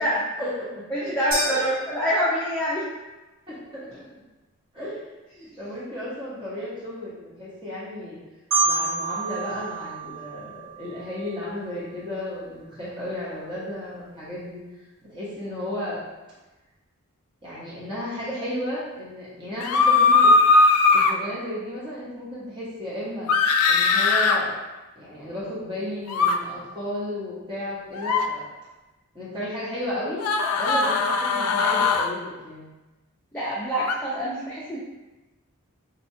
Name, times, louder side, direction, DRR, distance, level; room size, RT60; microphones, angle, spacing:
voice 1, 0.4-0.8 1.4-1.7 3.5-4.0 4.7-5.0 5.6-8.2 8.6-14.6 15.1-16.0 17.4-20.3 20.9-23.3 23.7-24.5 25.0-28.4 29.1-30.2 30.6-32.7, left 1 dB, 20° right, -9 dB, 0.8 m, -33 dB
voice 2, 0.9-2.9 5.4-5.5 33.3-34.8, equal, 5° left, -9 dB, 0.5 m, -26 dB
sound 1, 1.3-2.8, equal, 35° right, 1.3 m, -32 dB
Marimba xylophone, 8.5-11.3, right 3 dB, 85° right, 1.0 m, -28 dB
sound 2, 19.6-21.1 23.3-24.4 26.1-26.3 27.9-28.3 30.2-32.1 33.9-34.0, left 4 dB, 75° left, 0.3 m, -19 dB
4.2 x 2.3 x 2.7 m, 1.1 s
head